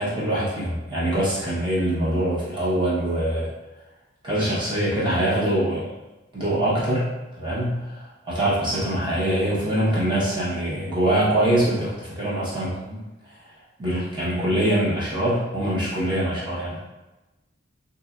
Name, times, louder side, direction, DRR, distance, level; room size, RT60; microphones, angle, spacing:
voice 1, 0.0-3.5 4.2-5.8 6.3-7.1 7.4-8.0 8.3-13.0 13.8-16.8, right 1 dB, 25° right, -8 dB, 0.7 m, -23 dB
2.8 x 2.2 x 2.3 m, 1.0 s
head